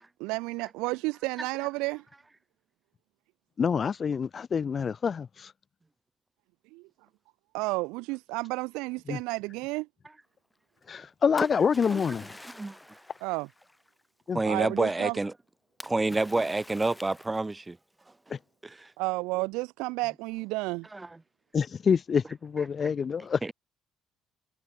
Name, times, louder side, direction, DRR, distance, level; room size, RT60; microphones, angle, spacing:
voice 1, 0.2-2.1 6.7-6.9 7.5-9.9 13.2-13.5 14.4-15.2 19.0-20.9, right 25 dB, 70° right, 0.7 m, -31 dB
voice 2, 3.6-5.5 9.1-9.2 10.9-12.4 14.3-14.4 18.3-18.4 21.5-23.5, left 6 dB, 45° left, 1.2 m, -27 dB
Splash splatter, 10.8-14.0 15.8-17.7, left 1 dB, 10° left, 2.8 m, -43 dB
voice 3, 14.3-15.3 15.8-17.8 18.6-18.9 20.9-21.0 23.4-23.5, right 2 dB, 20° right, 1.3 m, -28 dB
figure-of-eight pair, 45°, 0 cm